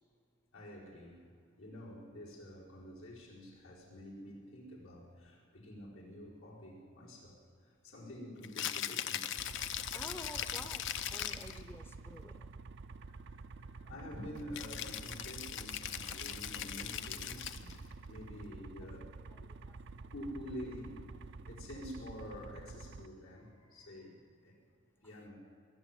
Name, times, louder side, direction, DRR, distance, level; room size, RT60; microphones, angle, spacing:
voice 1, 0.5-1.2 1.6-9.3 13.0-17.8 18.1-19.5 20.1-21.0 21.4-24.6 25.0-25.4, equal, 90° left, -5 dB, 4.7 m, -48 dB
Rattle (instrument), 8.4-11.6 14.5-17.8, left 10 dB, 60° left, 0.6 m, -40 dB
sound 1, 9.4-23.1, right 3 dB, 60° right, 0.5 m, -49 dB
voice 2, 9.9-12.6 16.0-16.1 18.8-18.9 19.3-20.1 21.4-21.5, left 1 dB, 10° left, 6 dB, 0.6 m, -51 dB
21.5 x 7.2 x 9.1 m, 2.4 s
head